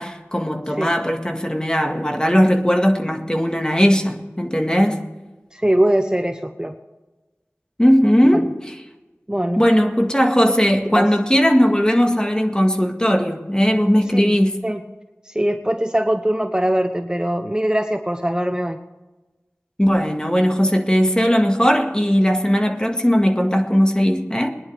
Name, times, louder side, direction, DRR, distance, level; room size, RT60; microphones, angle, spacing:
voice 1, 0.0-5.1 7.8-8.8 9.6-14.6 19.8-24.5, equal, 15° left, 1.9 m, -18 dB
voice 2, 5.5-6.7 8.3-8.5 9.3-9.6 10.9-11.1 14.1-14.3 14.6-14.8 15.3-18.8, right 1 dB, 15° right, 0.9 m, -21 dB
21.5 x 10.5 x 3.5 m
wide cardioid pair, 40°, 5 cm